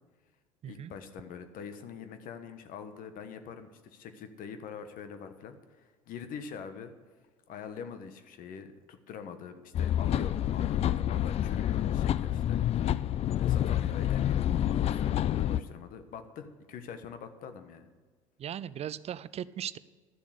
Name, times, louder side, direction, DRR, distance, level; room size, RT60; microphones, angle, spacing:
voice 1, 0.6-6.9 7.5-12.6 12.9-13.0 13.3-17.9, left 7 dB, 55° left, 9 dB, 1.3 m, -44 dB
sound 1, 9.7-15.6, left 11 dB, 40° left, 0.4 m, -28 dB
voice 2, 18.4-19.8, right 10 dB, 40° right, 18 dB, 0.5 m, -38 dB
12.5 x 7.1 x 6.6 m, 1.5 s
hypercardioid pair, 70°, 17 cm